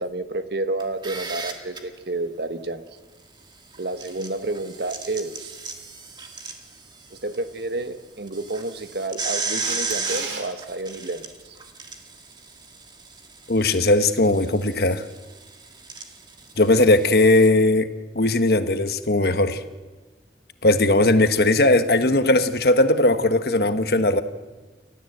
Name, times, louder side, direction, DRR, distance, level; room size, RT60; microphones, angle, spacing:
voice 1, 0.0-2.8 3.8-5.6 7.1-11.6, right 2 dB, 65° right, 9 dB, 1.4 m, -30 dB
sound 1, 0.8-1.8 3.7-7.4 7.7-7.8 8.3-17.5, right 4 dB, 25° right, 1.9 m, -35 dB
Camera, 9.6-10.4 17.2-17.3, right 5 dB, 85° right, 3.2 m, -34 dB
voice 2, 13.5-15.0 16.6-17.9 18.1-19.6 20.6-24.2, left 2 dB, 60° left, 10 dB, 1.3 m, -18 dB
30.0 x 13.5 x 8.0 m, 1.3 s
head